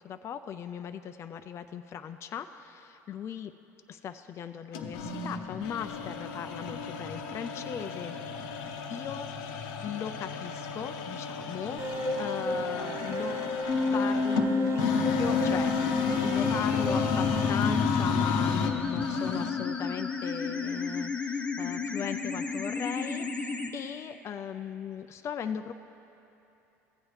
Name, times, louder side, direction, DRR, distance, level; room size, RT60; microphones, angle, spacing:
voice 1, 0.0-3.5 3.9-8.2 8.9-13.4 13.9-15.7 16.2-25.7, left 8 dB, 40° left, 8 dB, 0.4 m, -38 dB
sound 1, 4.7-19.7, left 5 dB, 70° left, 0.7 m, -33 dB
sound 2, 11.8-17.6, equal, 35° right, 1.2 m, -34 dB
sound 3, 13.7-23.7, left 5 dB, 15° left, 0.9 m, -30 dB
15.5 x 8.6 x 3.2 m, 3.0 s
hypercardioid pair, 75°, 8 cm